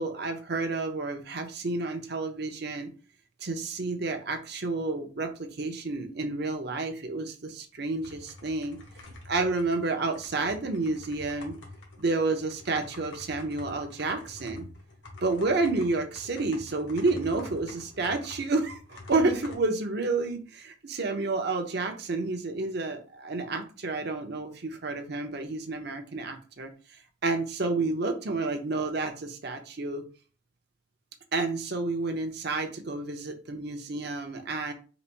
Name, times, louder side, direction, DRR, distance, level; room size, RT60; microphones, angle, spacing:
voice 1, 0.0-2.9 3.4-8.8 9.2-11.6 12.0-14.7 15.2-26.7 27.2-30.0 31.3-34.7, right 3 dB, 60° right, 5 dB, 0.8 m, -30 dB
sound 1, 8.0-19.5, left 2 dB, 70° left, 1.4 m, -47 dB
4.1 x 2.5 x 4.5 m, 0.37 s
head